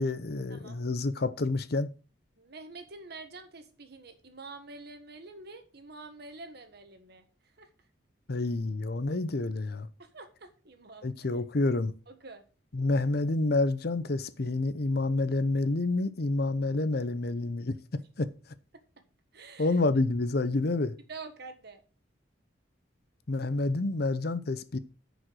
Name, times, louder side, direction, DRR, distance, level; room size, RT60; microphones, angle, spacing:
voice 1, 0.0-1.9 8.3-9.9 11.0-11.9 12.7-17.8 18.2-18.3 19.6-21.0 23.3-24.8, left 2 dB, 55° left, 0.7 m, -28 dB
voice 2, 2.4-7.2 7.6-7.7 10.0-11.1 12.1-12.4 19.3-19.8 21.1-21.8, right 3 dB, 60° right, 1.5 m, -47 dB
9.9 x 5.2 x 6.2 m
head